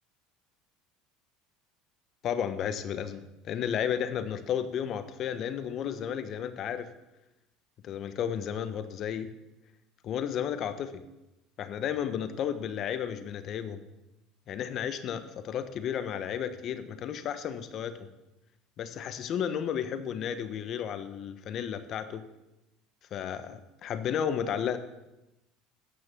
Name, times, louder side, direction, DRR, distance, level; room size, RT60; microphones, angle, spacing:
voice 1, 2.2-6.9 7.8-9.3 10.0-11.0 11.6-13.8 14.5-18.1 18.8-22.2 23.1-24.8, left 8 dB, 50° left, 11 dB, 1.2 m, -33 dB
13.5 x 9.8 x 6.1 m, 0.96 s
hypercardioid pair, 85°, 0 cm